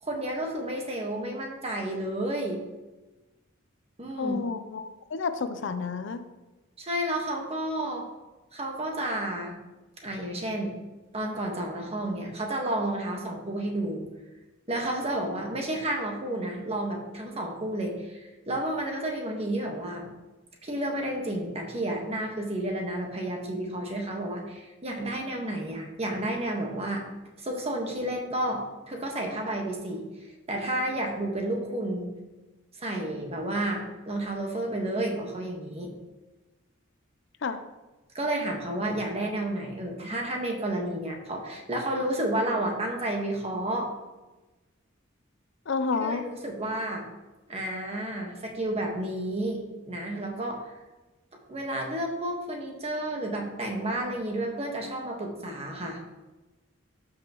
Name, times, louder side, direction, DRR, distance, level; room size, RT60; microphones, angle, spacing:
voice 1, 0.0-2.6 4.0-4.4 6.8-8.1 8.5-9.6 10.0-10.7 11.1-14.1 14.7-20.1 20.6-27.0 27.4-30.1 30.5-32.1 32.8-35.9 38.1-43.9 46.0-47.0 47.5-50.7 51.5-56.0, right 1 dB, 30° right, 1 dB, 1.4 m, -31 dB
voice 2, 4.2-4.8 5.1-6.2 37.4-37.6 45.7-46.3, left 4 dB, 65° left, 10 dB, 0.5 m, -29 dB
12.5 x 5.8 x 3.0 m, 1.1 s
head